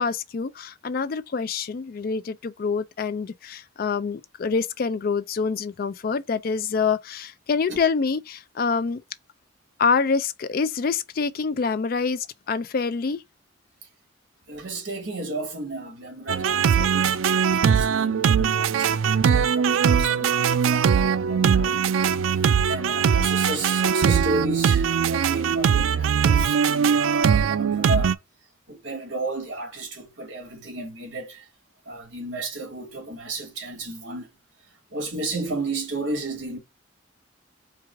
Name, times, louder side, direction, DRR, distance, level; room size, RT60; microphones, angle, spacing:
voice 1, 0.0-9.0 9.8-13.2, left 5 dB, 50° left, 0.4 m, -26 dB
voice 2, 14.5-17.2 17.7-21.8 22.3-28.2 28.7-31.4 31.9-34.3 34.9-36.6, right 2 dB, 60° right, 2.3 m, -33 dB
sound 1, 16.3-28.1, right 7 dB, 80° right, 0.4 m, -21 dB
4.5 x 2.4 x 4.6 m
head